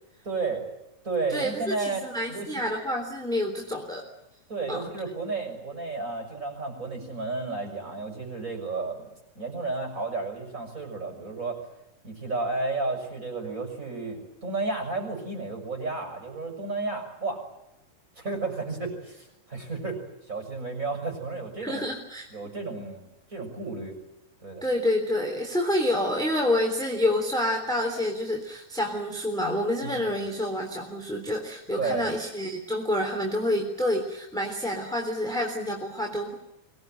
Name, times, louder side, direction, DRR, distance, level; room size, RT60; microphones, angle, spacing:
voice 1, 0.2-0.6 1.0-2.6 4.5-9.1 9.3-11.6 12.0-17.4 18.2-20.0 20.3-21.9 22.3-23.9 24.4-24.6 29.8-30.0 31.8-32.1, right 3 dB, 20° right, 3 dB, 6.7 m, -32 dB
voice 2, 1.3-4.0 4.7-4.8 21.6-22.3 24.6-36.3, left 1 dB, ahead, 1 dB, 2.9 m, -28 dB
24.5 x 20.0 x 9.4 m, 0.87 s
omnidirectional pair, 4.5 m